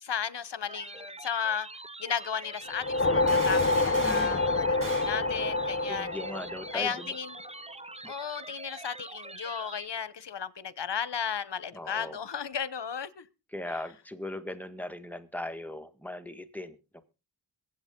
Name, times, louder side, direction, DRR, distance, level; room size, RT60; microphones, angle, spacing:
voice 1, 0.0-1.7 2.0-6.1 6.7-7.3 8.0-13.3, left 7 dB, 65° left, 1.0 m, -34 dB
sound 1, 0.7-9.9, right 2 dB, 15° right, 0.6 m, -44 dB
sound 2, 2.7-7.3, left 2 dB, 30° left, 0.8 m, -27 dB
sound 3, 3.3-4.4 4.8-5.2, right 2 dB, 45° right, 2.2 m, -39 dB
voice 2, 4.0-4.4 5.9-7.1 8.2-8.4 11.7-12.2 13.5-17.0, left 1 dB, 5° left, 1.7 m, -39 dB
23.0 x 8.1 x 3.8 m
wide cardioid pair, 50°, 44 cm